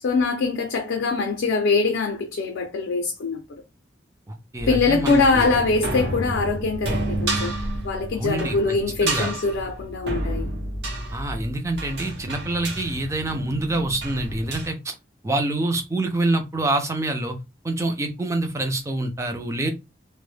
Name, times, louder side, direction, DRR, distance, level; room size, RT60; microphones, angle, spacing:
voice 1, 0.0-3.4 4.7-7.5 7.8-10.5, left 3 dB, 90° left, 0.4 m, -23 dB
voice 2, 4.3-5.5 8.2-8.6 9.0-9.3 11.1-14.9 15.2-17.4 17.6-19.7, right 2 dB, 15° right, 0.4 m, -26 dB
sound 1, 4.6-14.7, right 1 dB, 65° right, 0.8 m, -30 dB
2.0 x 2.0 x 3.1 m
head